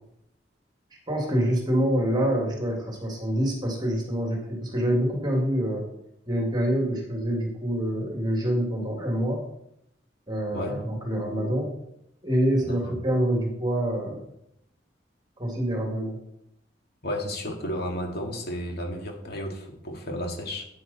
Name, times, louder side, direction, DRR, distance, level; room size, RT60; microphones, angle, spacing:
voice 1, 1.1-5.8 6.3-9.4 10.3-11.7 12.2-14.2 15.4-16.2, equal, 25° right, 0 dB, 2.2 m, -26 dB
voice 2, 17.0-20.6, left 1 dB, 60° left, 2 dB, 2.1 m, -32 dB
9.6 x 9.3 x 4.1 m, 0.77 s
head